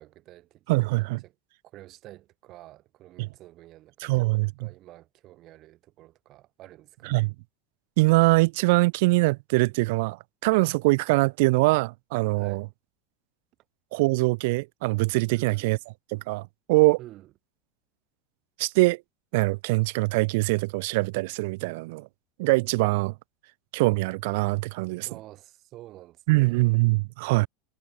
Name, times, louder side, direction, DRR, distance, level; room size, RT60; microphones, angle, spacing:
voice 1, 0.0-1.3 1.6-4.3 4.6-7.2 12.3-12.6 15.3-15.8 17.0-17.3 25.0-26.7 27.2-27.5, right 15 dB, 40° right, 1.7 m, -49 dB
voice 2, 0.7-1.2 3.2-3.3 4.0-4.7 7.0-7.3 8.0-12.6 13.9-15.8 16.1-17.0 18.6-19.0 19.3-22.1 22.4-23.1 23.7-25.1 26.3-27.5, right 24 dB, 70° right, 0.8 m, -23 dB
supercardioid pair, 145°, 0 cm